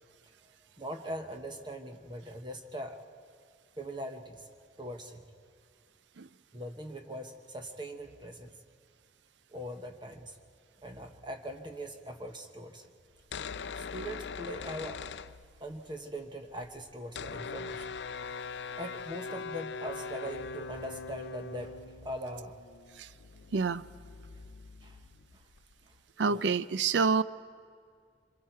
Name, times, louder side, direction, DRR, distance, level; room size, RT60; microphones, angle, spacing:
voice 1, 0.8-3.0 3.8-4.5 4.8-5.2 6.5-8.5 9.5-10.4 10.8-12.9 13.7-15.1 15.6-17.9 18.7-22.6 24.8-25.0 25.3-25.4 25.8-26.4, equal, 25° right, 4 dB, 1.2 m, -41 dB
sound 1, 13.2-15.9 16.2-16.3 16.4-25.9, left 5 dB, 75° left, 0.5 m, -42 dB
voice 2, 23.5-23.8 26.2-27.2, right 5 dB, 85° right, 15 dB, 0.6 m, -27 dB
27.0 x 26.5 x 4.6 m, 2.2 s
head